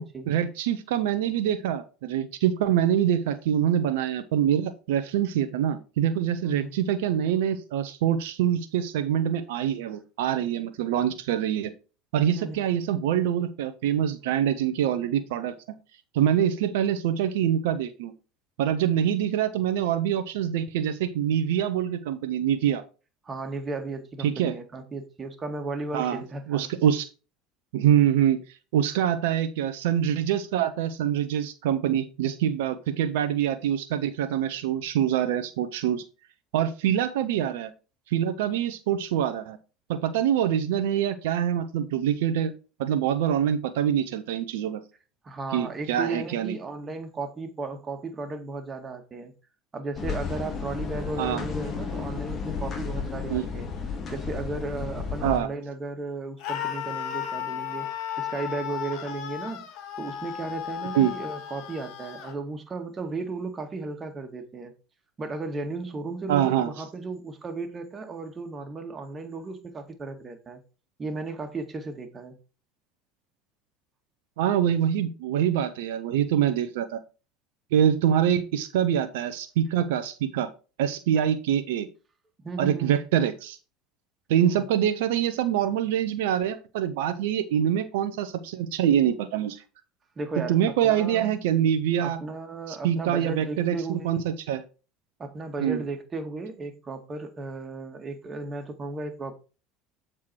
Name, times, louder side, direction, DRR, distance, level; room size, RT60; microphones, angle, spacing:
voice 1, 0.3-11.7 12.1-15.5 16.1-18.1 18.6-22.8 24.2-24.5 25.9-26.2 26.5-27.1 27.7-28.4 28.7-36.0 36.5-37.7 38.1-39.6 39.9-42.5 42.8-44.8 45.5-46.6 51.2-51.4 53.3-53.5 55.2-55.5 60.9-61.1 66.3-66.7 74.4-77.0 77.7-80.5 80.8-81.9 82.6-83.6 84.3-89.6 90.5-92.2 92.7-94.6 95.6-95.8, right 10 dB, 75° right, 0.8 m, -25 dB
voice 2, 23.2-26.7 45.2-49.3 49.7-53.7 54.1-59.7 60.0-64.7 65.2-70.6 71.0-72.4 82.4-82.9 90.2-90.6 90.8-91.3 92.0-94.2 95.2-99.3, right 3 dB, 30° right, 2.0 m, -35 dB
sound 1, 49.9-55.4, left 5 dB, 40° left, 2.2 m, -33 dB
Screaming, 56.4-62.3, left 10 dB, 65° left, 1.9 m, -34 dB
7.6 x 4.6 x 4.5 m
hypercardioid pair, 80°, 0 cm